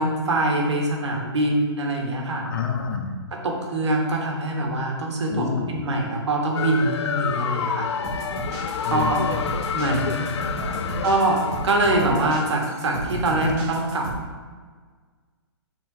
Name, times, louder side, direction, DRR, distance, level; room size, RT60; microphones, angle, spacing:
voice 1, 0.0-2.5 3.3-7.9 8.9-9.2 9.7-10.3 11.0-14.1, right 2 dB, 75° right, 0 dB, 1.3 m, -24 dB
voice 2, 2.5-3.2 5.3-5.8 8.8-9.2 10.6-11.0 13.3-13.5, left 6 dB, 45° left, 3 dB, 0.8 m, -29 dB
sound 1, 6.6-13.2, left 7 dB, 70° left, 0.4 m, -29 dB
sound 2, 8.0-14.2, right 3 dB, 40° right, 1.7 m, -33 dB
4.6 x 3.9 x 5.3 m, 1.5 s
hypercardioid pair, 150°, 15 cm